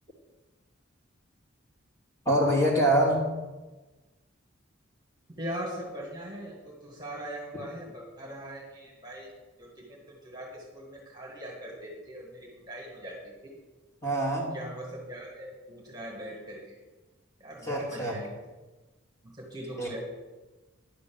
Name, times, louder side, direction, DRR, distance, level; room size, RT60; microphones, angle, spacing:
voice 1, 2.3-3.3 14.0-14.6 17.6-18.2 19.8-19.9, right 1 dB, 15° left, -3 dB, 2.3 m, -25 dB
voice 2, 5.3-9.3 9.6-13.6 14.5-16.8 17.4-18.3 19.2-20.0, equal, 20° right, -2 dB, 1.7 m, -41 dB
10.5 x 6.9 x 6.9 m, 1.2 s
head